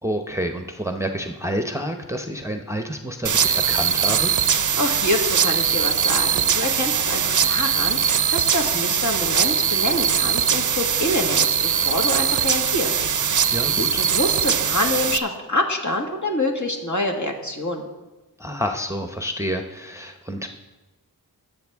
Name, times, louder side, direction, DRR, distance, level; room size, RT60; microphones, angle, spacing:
voice 1, 0.0-4.3 13.5-14.1 18.4-20.5, equal, 10° right, 4 dB, 0.7 m, -28 dB
sound 1, 3.2-15.2, right 7 dB, 55° right, 0.5 m, -21 dB
voice 2, 4.8-13.0 13.3-17.8, left 1 dB, 50° left, 1 dB, 1.8 m, -26 dB
20.0 x 7.2 x 3.5 m, 1.1 s
wide cardioid pair, 55°, 37 cm